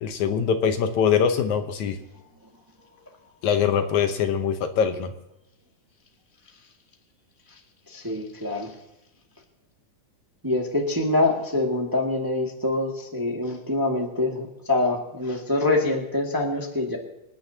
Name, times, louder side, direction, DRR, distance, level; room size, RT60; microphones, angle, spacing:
voice 1, 0.0-2.0 3.4-5.1, left 7 dB, 75° left, 7 dB, 2.3 m, -23 dB
voice 2, 7.9-8.7 10.4-17.0, left 2 dB, 10° right, 0 dB, 1.3 m, -25 dB
26.5 x 10.5 x 2.8 m, 0.90 s
omnidirectional pair, 3.5 m